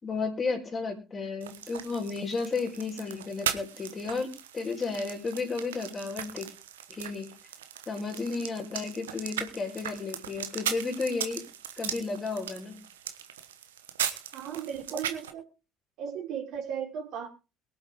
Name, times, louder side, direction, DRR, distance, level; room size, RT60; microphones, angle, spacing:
voice 1, 0.0-6.5 6.9-7.3 7.9-11.5 11.8-12.8, left 4 dB, 30° left, 2 dB, 4.5 m, -33 dB
sound 1, 1.4-15.3, right 10 dB, 80° right, 1.2 m, -38 dB
voice 2, 14.3-15.5 16.0-17.3, right 8 dB, 60° right, 0 dB, 3.9 m, -36 dB
23.0 x 7.9 x 3.7 m, 0.32 s
figure-of-eight pair, 60°, 0 cm